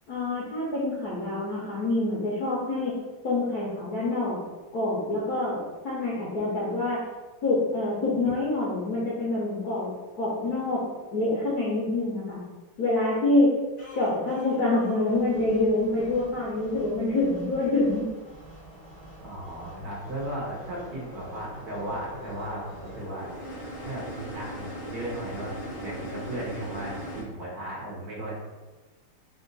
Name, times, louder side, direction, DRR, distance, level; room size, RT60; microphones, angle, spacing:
voice 1, 0.1-2.9 3.2-4.4 4.7-7.0 7.4-9.9 10.2-10.8 11.1-12.4 12.8-13.5 13.9-18.1, left 2 dB, 60° left, -6 dB, 1.0 m, -26 dB
sound 1, 13.8-27.2, equal, 90° left, 0.4 m, -42 dB
voice 2, 19.2-23.3 23.8-28.4, right 1 dB, 55° right, -5 dB, 1.1 m, -36 dB
3.7 x 2.6 x 3.9 m, 1.2 s
omnidirectional pair, 2.4 m